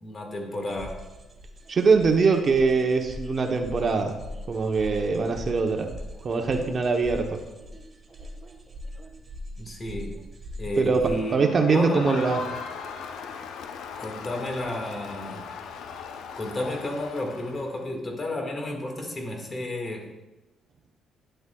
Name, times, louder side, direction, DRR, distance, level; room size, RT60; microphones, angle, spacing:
voice 1, 0.0-1.0 9.6-10.2 10.6-12.2 14.0-15.5 16.4-20.1, left 1 dB, 30° left, 2 dB, 1.7 m, -32 dB
sound 1, 0.7-11.1, equal, 30° right, 1.4 m, -41 dB
voice 2, 1.7-4.2 4.5-5.9 6.2-7.4 10.8-11.0 11.3-12.4, right 4 dB, 45° right, 4 dB, 0.8 m, -22 dB
Crowd, 11.0-17.9, left 6 dB, 80° left, 0.6 m, -39 dB
10.0 x 7.9 x 2.3 m, 1.1 s
cardioid pair, 90°, 0 cm